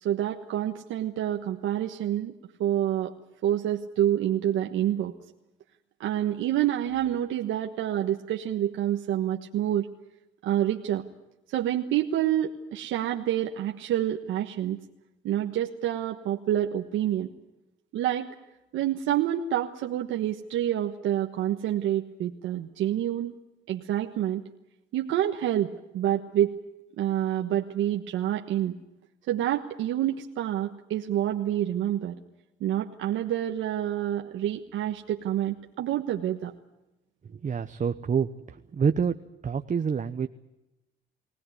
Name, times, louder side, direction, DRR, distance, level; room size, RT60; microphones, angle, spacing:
voice 1, 0.0-2.3 2.6-3.1 3.4-5.1 6.0-9.9 10.4-11.0 11.5-14.8 15.2-17.3 17.9-18.3 18.7-23.3 23.7-24.4 24.9-26.6 27.0-28.8 29.3-32.2 32.6-36.5, right 11 dB, 90° right, 2 dB, 1.4 m, -27 dB
voice 2, 37.3-39.2 39.4-40.3, right 6 dB, 40° right, 8 dB, 1.0 m, -27 dB
23.0 x 17.5 x 9.5 m, 0.96 s
cardioid pair, 90°, 20 cm